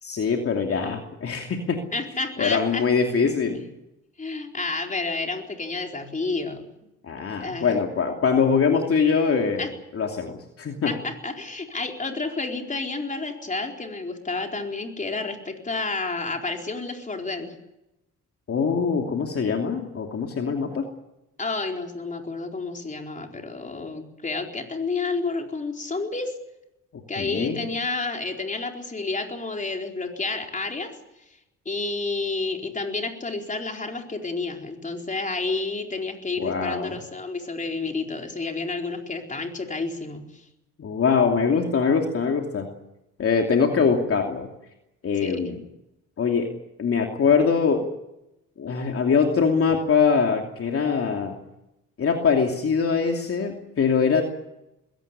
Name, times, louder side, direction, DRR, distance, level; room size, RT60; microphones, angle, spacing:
voice 1, 0.0-1.8 2.4-3.6 7.0-9.7 9.9-10.9 18.5-20.9 27.2-27.6 36.4-37.0 40.8-42.7 43.2-44.5 45.0-45.6 46.2-46.5 46.8-47.9 48.6-51.4 52.0-54.2, left 5 dB, 50° left, 3 dB, 2.8 m, -23 dB
voice 2, 1.9-2.8 4.2-6.6 7.4-7.7 9.6-9.7 10.9-17.5 21.4-26.3 27.1-30.9 31.6-40.4 45.2-45.3, left 3 dB, 25° left, 3 dB, 4.3 m, -30 dB
21.5 x 17.5 x 9.9 m, 0.90 s
cardioid pair, 90°, 30 cm